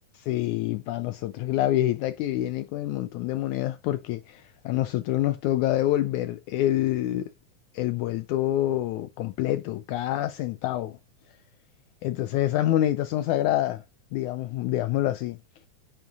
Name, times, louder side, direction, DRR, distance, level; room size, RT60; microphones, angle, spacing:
voice 1, 0.1-7.3 7.7-11.0 12.0-13.8 14.1-15.4, left 13 dB, 80° left, 1.8 m, -26 dB
9.5 x 5.6 x 4.0 m
omnidirectional pair, 3.8 m